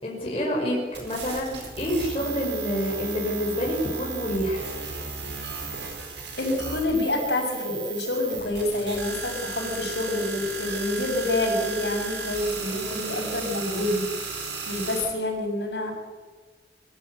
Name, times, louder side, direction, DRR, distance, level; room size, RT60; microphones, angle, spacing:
voice 1, 0.0-4.7, equal, 30° left, -4 dB, 5.1 m, -28 dB
sound 1, 0.9-15.1, right 4 dB, 80° right, 4.9 m, -35 dB
voice 2, 6.4-14.1 14.7-15.9, left 1 dB, 75° left, 0 dB, 6.9 m, -27 dB
23.5 x 13.0 x 9.2 m, 1.4 s
head